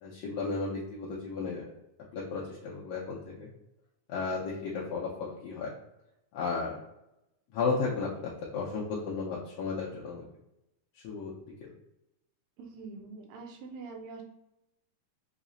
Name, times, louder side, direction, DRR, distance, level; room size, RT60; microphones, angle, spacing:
voice 1, 0.0-1.7 2.1-3.5 4.1-5.7 6.3-6.8 7.5-10.2 11.0-11.3 11.6-11.7, left 4 dB, 75° left, -6 dB, 1.7 m, -34 dB
voice 2, 12.6-14.2, right 4 dB, 80° right, 2 dB, 1.7 m, -44 dB
5.6 x 2.0 x 2.5 m, 0.87 s
omnidirectional pair, 3.4 m